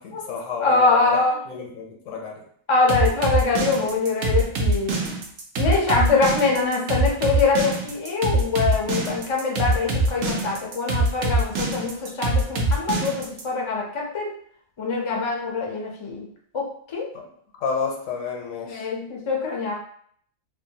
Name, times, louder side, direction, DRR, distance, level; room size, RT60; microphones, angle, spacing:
voice 1, 0.0-1.2 1.5-2.4 17.1-17.3 17.6-18.9, left 5 dB, 80° left, 0 dB, 1.1 m, -30 dB
voice 2, 0.6-1.4 2.7-5.0 5.6-14.3 14.8-16.3 16.5-17.1 18.6-19.8, left 4 dB, 50° left, -2 dB, 0.3 m, -23 dB
sound 1, 2.9-13.4, right 2 dB, 65° right, 0.8 m, -23 dB
2.6 x 2.2 x 2.7 m, 0.62 s
omnidirectional pair, 1.4 m